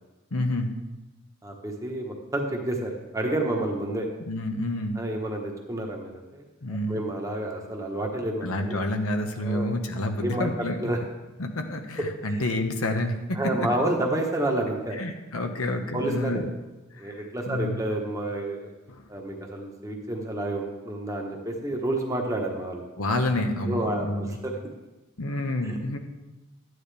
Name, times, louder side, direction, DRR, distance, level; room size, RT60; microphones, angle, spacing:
voice 1, 0.3-0.7 4.3-5.0 6.6-7.0 8.4-10.8 11.4-13.4 15.0-16.5 16.9-17.8 18.9-19.0 23.0-24.4 25.2-26.0, left 1 dB, 90° left, 5 dB, 1.1 m, -29 dB
voice 2, 1.4-4.1 4.9-8.8 9.4-9.7 10.2-10.5 10.8-11.0 12.0-12.4 13.3-15.0 15.9-16.4 17.0-18.7 19.1-22.9 23.7-24.5 25.6-26.0, right 1 dB, 15° right, 1 dB, 1.2 m, -30 dB
12.5 x 9.4 x 3.4 m, 1.1 s
head